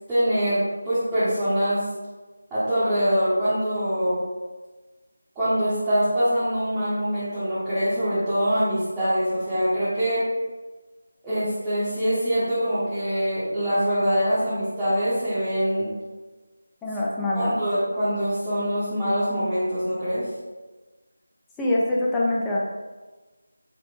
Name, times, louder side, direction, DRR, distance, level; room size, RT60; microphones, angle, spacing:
voice 1, 0.1-1.8 2.5-4.2 5.3-10.3 11.2-15.9 17.3-20.3, equal, 10° right, -16 dB, 0.8 m, -24 dB
voice 2, 16.8-17.6 21.6-22.6, left 1 dB, 5° left, -6 dB, 0.4 m, -24 dB
4.2 x 2.0 x 3.1 m, 1.2 s
figure-of-eight pair, 165°, 0 cm